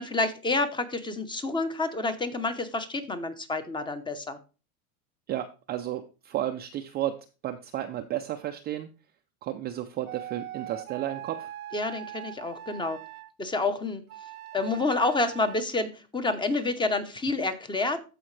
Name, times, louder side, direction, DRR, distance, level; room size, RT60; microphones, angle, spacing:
voice 1, 0.0-4.4 11.7-13.0 13.4-14.0 14.5-18.0, left 3 dB, 10° left, 10 dB, 0.9 m, -28 dB
voice 2, 5.3-7.1 7.4-8.9 9.4-11.5, right 12 dB, 25° right, 5 dB, 0.4 m, -32 dB
sound 1, 10.1-13.3 14.1-15.6, right 12 dB, 85° right, 0.8 m, -41 dB
14.0 x 5.0 x 3.2 m, 0.33 s
supercardioid pair, 130°, 43 cm